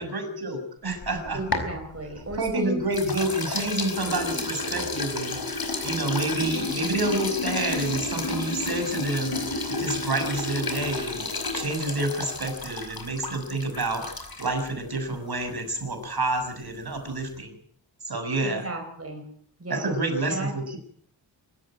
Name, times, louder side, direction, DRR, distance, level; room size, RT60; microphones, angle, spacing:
voice 1, 0.0-1.4 2.4-5.4 5.8-9.4 9.7-11.2 11.5-14.0 14.4-17.5 18.0-18.6 19.7-20.8, right 2 dB, 55° right, 6 dB, 6.6 m, -28 dB
sound 1, 0.9-2.5 2.9-14.7, left 3 dB, 50° left, 5.1 m, -31 dB
voice 2, 1.3-2.8 3.1-3.2 3.5-3.6 4.1-4.4 6.4-6.7 18.4-19.3 19.6-20.0 20.3-20.6, right 2 dB, 30° right, 3 dB, 4.7 m, -35 dB
25.5 x 14.0 x 8.9 m, 0.62 s
wide cardioid pair, 75°, 46 cm